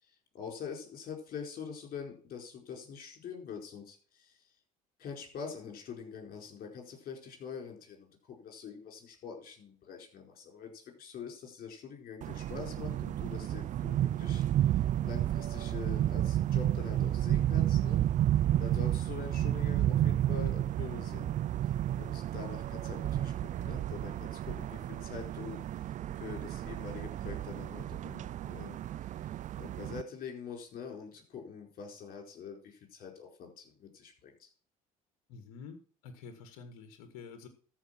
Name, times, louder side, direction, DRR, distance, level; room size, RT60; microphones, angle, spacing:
voice 1, 0.0-4.4 5.0-18.0 18.6-21.3 21.9-28.8 29.5-34.5, left 6 dB, 55° left, 2 dB, 4.8 m, -45 dB
sound 1, 12.2-30.0, right 12 dB, 45° right, 0.4 m, -31 dB
voice 2, 35.3-35.8 36.0-37.5, left 5 dB, 75° left, 8 dB, 1.7 m, -48 dB
13.5 x 5.3 x 5.9 m, 0.42 s
hypercardioid pair, 70°, 18 cm